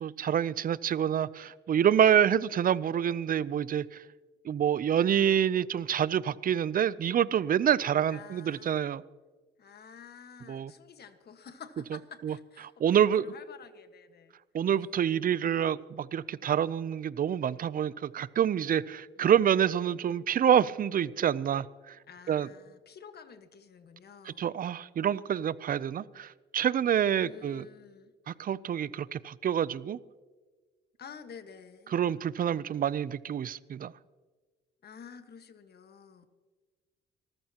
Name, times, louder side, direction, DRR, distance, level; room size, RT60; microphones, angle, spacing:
voice 1, 0.0-4.0 4.4-9.0 10.5-10.7 12.2-12.3 12.8-13.2 14.5-22.0 22.3-22.5 24.3-27.7 28.3-30.0 31.9-33.9, right 9 dB, 45° right, 0.5 m, -27 dB
voice 2, 8.1-8.9 9.6-14.4 19.2-19.3 22.1-24.5 27.2-28.1 31.0-31.9 34.8-36.3, left 6 dB, 55° left, 1.5 m, -50 dB
26.0 x 14.5 x 2.9 m
cardioid pair, 90°, 20 cm